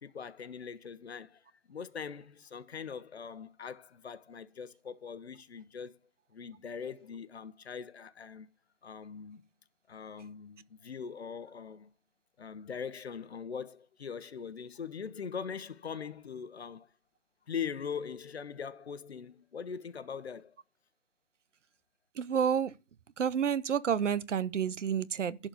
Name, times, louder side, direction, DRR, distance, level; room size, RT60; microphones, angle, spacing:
voice 1, 0.0-6.0 6.3-8.5 8.8-9.5 9.9-11.9 12.4-16.9 17.5-20.5, left 6 dB, 55° left, 1.1 m, -41 dB
voice 2, 22.2-22.7 23.2-25.5, right 8 dB, 70° right, 0.8 m, -30 dB
11.5 x 4.4 x 6.7 m
hypercardioid pair, 180°, 38 cm